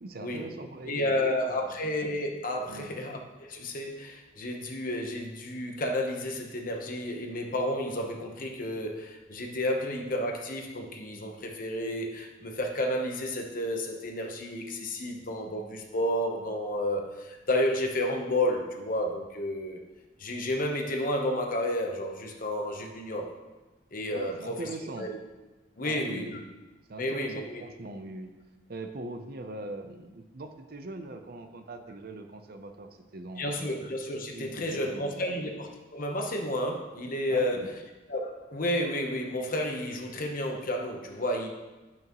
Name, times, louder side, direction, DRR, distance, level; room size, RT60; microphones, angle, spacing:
voice 1, 0.0-1.7 2.7-3.0 24.1-25.1 25.8-26.4 26.9-28.3 28.7-33.8 34.3-35.4 37.3-37.7, right 2 dB, 55° right, 7 dB, 0.7 m, -41 dB
voice 2, 0.9-19.8 20.2-23.3 23.9-24.3 25.0-25.2 25.8-26.4 27.0-27.6 33.4-37.6 38.1-41.5, left 1 dB, 45° left, 2 dB, 1.0 m, -31 dB
11.5 x 5.8 x 3.1 m, 1.1 s
head